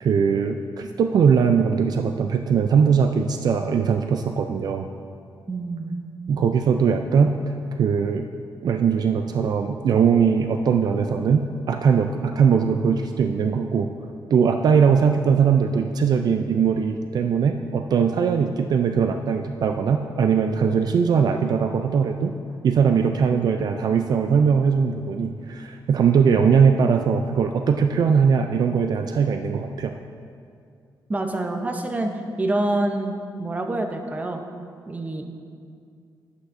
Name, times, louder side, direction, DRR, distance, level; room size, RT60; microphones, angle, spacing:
voice 1, 0.0-4.9 6.3-7.4 7.7-8.3 8.6-13.9 14.3-22.3 22.6-29.9, right 6 dB, 55° right, 6 dB, 0.4 m, -20 dB
voice 2, 5.5-6.0 31.1-34.4 34.9-35.3, right 2 dB, 20° right, 4 dB, 0.6 m, -26 dB
11.0 x 8.1 x 2.6 m, 2.3 s
cardioid pair, 125°, 8 cm